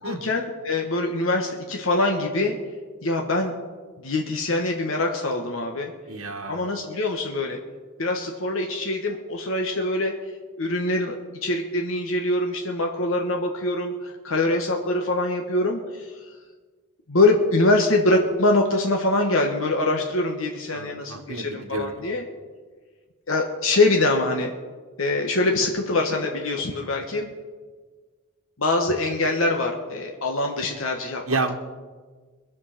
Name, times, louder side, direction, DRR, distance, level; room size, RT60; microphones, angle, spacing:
voice 1, 0.0-2.6 3.0-3.6 4.0-5.9 6.5-7.6 8.0-10.1 10.6-11.2 11.4-16.1 17.1-22.2 23.3-24.5 25.0-27.3 28.6-31.4, left 2 dB, 70° left, 1 dB, 1.4 m, -24 dB
voice 2, 6.1-6.6 20.7-22.0 31.3-31.5, right 3 dB, 80° right, 3 dB, 1.4 m, -30 dB
22.5 x 7.5 x 5.8 m, 1.4 s
head